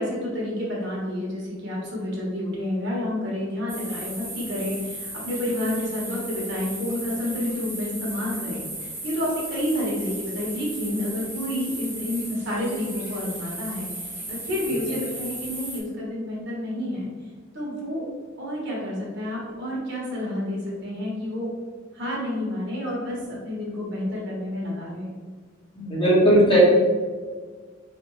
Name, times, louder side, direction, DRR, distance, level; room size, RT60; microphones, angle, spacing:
voice 1, 0.0-17.1 17.5-18.1 18.4-21.5 21.9-25.1, left 1 dB, 55° right, -5 dB, 1.4 m, -29 dB
sound 1, 3.7-15.8, right 1 dB, 10° right, 0.7 m, -36 dB
voice 2, 25.7-26.6, equal, 25° left, -7 dB, 1.3 m, -18 dB
3.9 x 3.4 x 3.1 m, 1.5 s
head